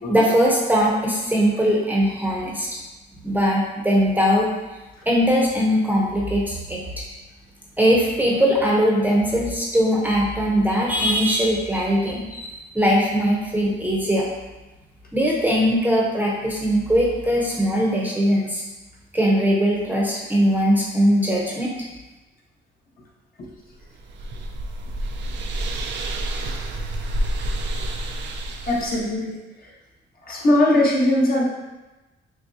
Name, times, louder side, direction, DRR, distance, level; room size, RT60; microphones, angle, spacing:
voice 1, 0.1-2.7 3.2-4.5 5.1-7.0 7.8-14.3 15.1-18.6 19.1-21.7, equal, 10° right, -3 dB, 0.8 m, -20 dB
sound 1, 23.7-29.1, right 1 dB, 65° right, 0.5 m, -28 dB
voice 2, 28.6-29.4 30.3-31.4, left 1 dB, 45° left, -4 dB, 1.1 m, -20 dB
6.2 x 2.2 x 2.7 m, 1.1 s
cardioid pair, 90°, 20 cm